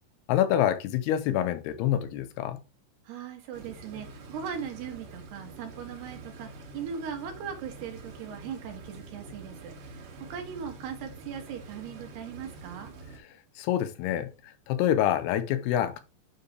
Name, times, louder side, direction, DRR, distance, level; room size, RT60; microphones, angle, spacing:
voice 1, 0.3-2.6 13.6-14.3 14.7-16.0, left 11 dB, 80° left, 2.7 m, -26 dB
voice 2, 3.1-12.9, right 7 dB, 80° right, 3.6 m, -39 dB
sound 1, 3.5-13.2, right 3 dB, 60° right, 3.0 m, -46 dB
9.6 x 4.7 x 3.2 m
omnidirectional pair, 4.7 m